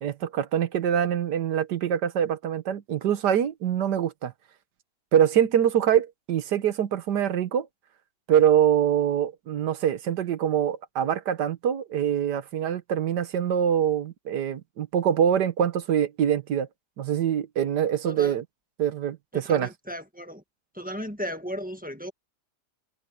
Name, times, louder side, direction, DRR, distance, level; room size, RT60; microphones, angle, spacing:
voice 1, 0.0-4.3 5.1-7.7 8.3-16.7 17.0-18.4 18.8-19.7, right 9 dB, 85° right, 1.7 m, -24 dB
voice 2, 18.0-18.3 19.3-20.4 20.7-22.1, equal, 5° right, 1.3 m, -35 dB
omnidirectional pair, 1.7 m